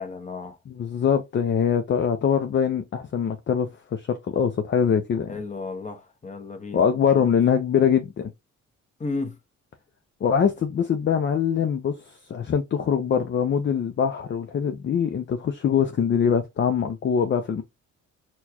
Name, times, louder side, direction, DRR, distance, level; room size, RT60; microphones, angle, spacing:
voice 1, 0.0-0.6 5.3-6.8 7.2-7.3 9.0-9.4, left 3 dB, 25° left, 1.0 m, -33 dB
voice 2, 0.7-5.3 6.7-8.3 10.2-17.6, left 7 dB, 40° left, 0.5 m, -23 dB
4.3 x 2.3 x 2.8 m
cardioid pair, 90°, 30 cm